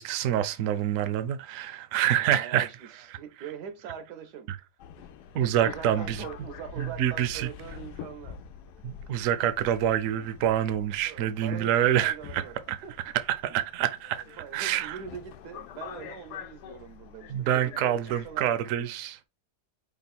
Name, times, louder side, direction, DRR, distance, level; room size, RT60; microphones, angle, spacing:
voice 1, 0.0-2.7 4.5-4.6 5.3-6.2 6.8-7.5 8.8-12.4 12.7-12.8 13.4-15.0 17.3-19.2, right 11 dB, 65° right, 0.9 m, -27 dB
voice 2, 2.2-4.7 5.0-8.4 8.8-8.9 11.1-12.6 12.8-13.0 13.5-13.6 14.4-18.9, right 8 dB, 85° right, 1.4 m, -43 dB
Subway metro underground, 4.8-18.4, left 8 dB, 90° left, 1.2 m, -46 dB
5.2 x 2.4 x 4.1 m
omnidirectional pair, 1.7 m